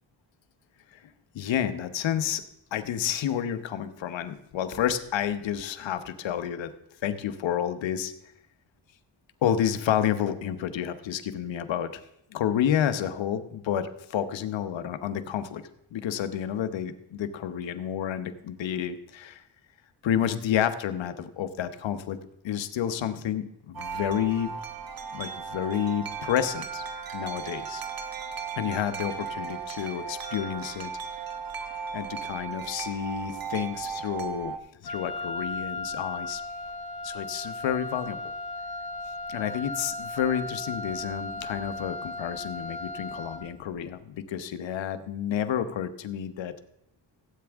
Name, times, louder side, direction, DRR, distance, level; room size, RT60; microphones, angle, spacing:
voice 1, 1.3-2.4 2.7-6.7 7.0-8.1 9.4-11.9 12.3-15.6 15.9-19.4 20.0-22.2 22.4-24.5 25.1-26.8 27.1-27.8 28.6-30.9 31.9-34.6 34.8-36.4 37.0-38.2 39.3-46.5, left 9 dB, 75° left, 11 dB, 1.0 m, -30 dB
Wind chime, 23.7-34.6, right 6 dB, 50° right, 1.3 m, -36 dB
Wind instrument woodwind instrument, 34.8-43.5, left 2 dB, 55° left, 1.6 m, -36 dB
16.0 x 8.8 x 3.5 m, 0.80 s
cardioid pair, 75°, 45 cm